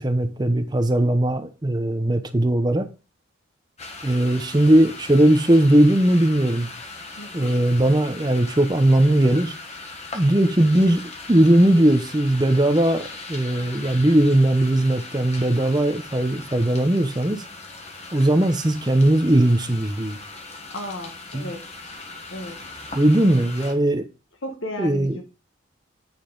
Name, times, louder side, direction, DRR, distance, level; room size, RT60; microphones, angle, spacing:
voice 1, 0.0-2.9 4.0-6.7 7.3-9.5 10.1-11.0 11.3-17.4 18.1-20.2 21.3-21.5 22.9-24.0 24.8-25.2, right 1 dB, 20° right, 0.7 m, -19 dB
sound 1, 3.8-23.7, left 3 dB, 30° left, 1.2 m, -39 dB
voice 2, 7.2-7.6 20.7-21.7 22.3-22.6 24.4-25.2, left 1 dB, 75° left, 1.5 m, -34 dB
8.9 x 5.5 x 3.9 m
head